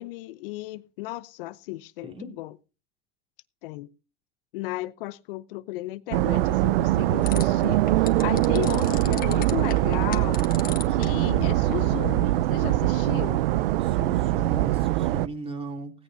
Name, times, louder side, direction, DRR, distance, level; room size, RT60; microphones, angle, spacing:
voice 1, 0.0-2.6 3.6-3.9 4.5-10.5 10.9-13.4, left 18 dB, 70° left, 0.8 m, -35 dB
voice 2, 2.0-2.3 13.8-15.9, right 3 dB, 20° right, 2.9 m, -37 dB
sound 1, 6.1-15.3, right 15 dB, 75° right, 0.6 m, -23 dB
sound 2, 7.2-12.8, left 9 dB, 30° left, 1.4 m, -41 dB
17.0 x 16.0 x 2.7 m
supercardioid pair, 125°, 29 cm